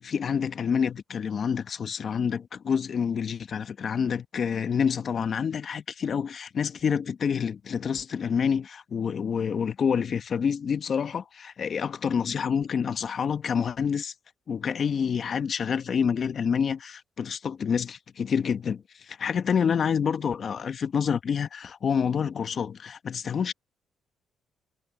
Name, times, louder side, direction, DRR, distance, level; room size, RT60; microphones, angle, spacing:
voice 1, 0.0-14.1 14.5-23.5, left 7 dB, 50° left, 1.3 m, -28 dB
cardioid pair, 90°, 0 cm